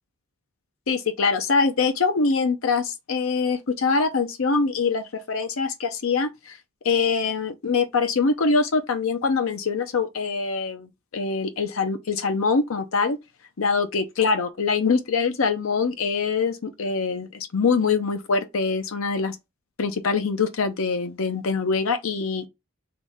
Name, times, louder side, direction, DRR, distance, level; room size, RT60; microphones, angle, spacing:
voice 1, 0.9-6.6 6.8-13.2 13.6-19.4 19.8-22.5, left 4 dB, 85° left, 0.6 m, -24 dB
4.0 x 3.0 x 3.5 m
head